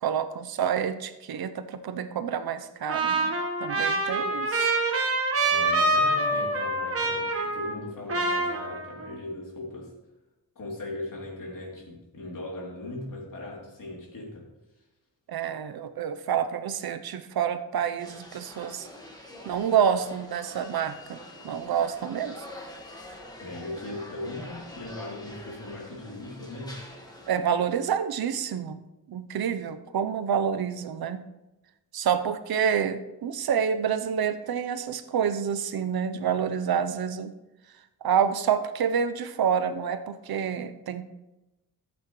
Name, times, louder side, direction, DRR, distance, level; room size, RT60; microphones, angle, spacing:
voice 1, 0.0-3.3 3.6-4.7 15.3-18.9 19.4-21.2 21.4-22.4 27.3-28.8 29.1-31.2 31.9-37.3 38.0-41.0, right 8 dB, 80° right, 10 dB, 0.8 m, -28 dB
Trumpet, 2.9-9.1, right 2 dB, 40° right, 1.4 m, -26 dB
voice 2, 5.5-9.9 10.5-14.5 23.4-26.8, left 2 dB, 60° left, -2 dB, 3.1 m, -38 dB
sound 1, 18.0-27.4, left 1 dB, 10° left, 1.6 m, -45 dB
14.5 x 8.2 x 3.1 m, 0.98 s
wide cardioid pair, 130°, 37 cm